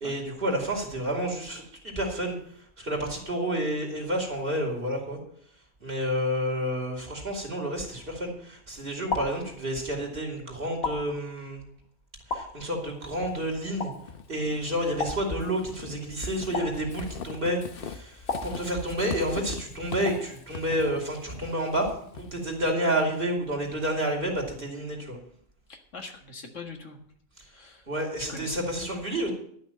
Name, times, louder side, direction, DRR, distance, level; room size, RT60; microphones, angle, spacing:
voice 1, 0.0-5.2 5.8-11.6 12.3-13.9 14.3-25.2 27.4-27.5 27.9-29.3, equal, 40° right, 1 dB, 3.0 m, -30 dB
sound 1, 8.0-8.5 9.1-10.1 10.8-11.7 12.3-13.1 13.8-14.4 15.0-15.9 16.5-17.4 18.3-19.2 20.1-20.7, left 3 dB, 85° left, 2.3 m, -36 dB
Walk footsteps / Squeak, 13.0-22.6, left 5 dB, 50° left, 0.9 m, -42 dB
voice 2, 25.7-27.0 27.5-27.9 28.3-28.6, left 3 dB, 65° left, 4 dB, 2.0 m, -42 dB
12.0 x 6.1 x 8.9 m, 0.64 s
omnidirectional pair, 1.4 m